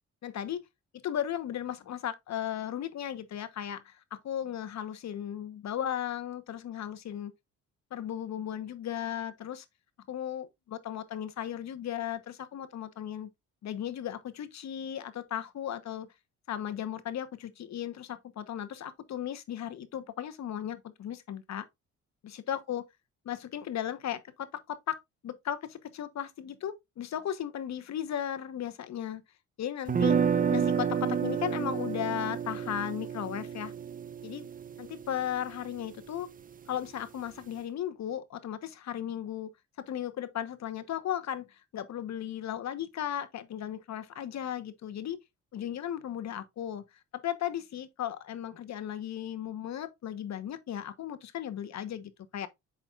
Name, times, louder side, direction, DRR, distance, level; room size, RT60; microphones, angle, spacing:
voice 1, 0.2-0.6 1.0-7.3 7.9-9.6 10.1-13.3 13.6-16.1 16.5-21.6 22.2-22.8 23.2-25.0 25.2-29.2 29.6-30.2 30.5-33.7 34.2-34.5 34.8-36.3 36.7-39.5 39.9-45.2 45.5-46.8 47.1-52.5, left 10 dB, 65° left, 1.1 m, -36 dB
sound 1, 29.9-35.9, right 7 dB, 30° right, 0.6 m, -30 dB
7.9 x 6.0 x 2.4 m
cardioid pair, 90°, 30 cm